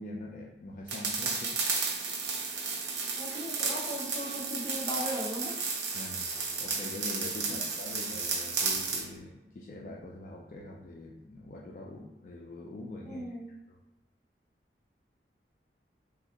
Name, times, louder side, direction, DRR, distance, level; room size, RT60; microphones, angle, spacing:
voice 1, 0.0-1.5 5.9-6.3 6.6-13.3 13.7-13.8, left 2 dB, 45° left, -2 dB, 0.3 m, -43 dB
sound 1, 0.9-9.1, right 4 dB, 80° right, 0.5 m, -33 dB
voice 2, 3.2-5.5 7.5-7.7 13.1-13.5, equal, 15° left, -6 dB, 0.8 m, -37 dB
3.3 x 2.3 x 2.8 m, 1.0 s
head